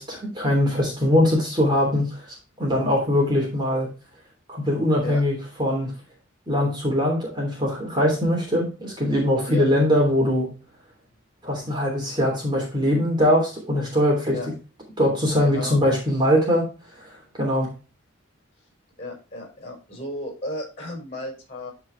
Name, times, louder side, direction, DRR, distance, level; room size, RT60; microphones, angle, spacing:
voice 1, 0.0-2.3 2.6-3.9 4.5-5.9 6.5-10.5 11.4-14.4 15.0-16.7 17.0-17.1 17.4-17.7, left 1 dB, 20° right, -2 dB, 3.1 m, -22 dB
voice 2, 15.4-15.8 19.0-21.7, left 1 dB, 30° left, 2 dB, 5.4 m, -33 dB
12.0 x 4.8 x 3.3 m, 0.33 s
head